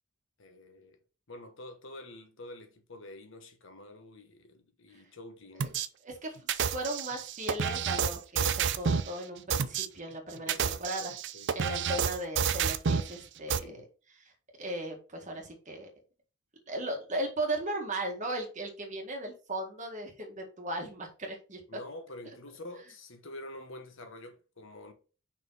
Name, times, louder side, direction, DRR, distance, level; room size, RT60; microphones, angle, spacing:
voice 1, 0.4-1.0 1.3-5.7 10.4-11.9 13.5-13.8 21.7-24.9, left 1 dB, 65° left, 1.2 m, -47 dB
sound 1, 5.6-5.9 6.5-9.1 9.5-9.9 10.4-13.1 13.5-13.6, right 6 dB, 60° right, 0.5 m, -29 dB
voice 2, 6.1-11.1 11.6-13.8 14.6-15.9 16.7-21.6, right 1 dB, 35° right, 1.9 m, -37 dB
5.7 x 4.3 x 4.0 m
head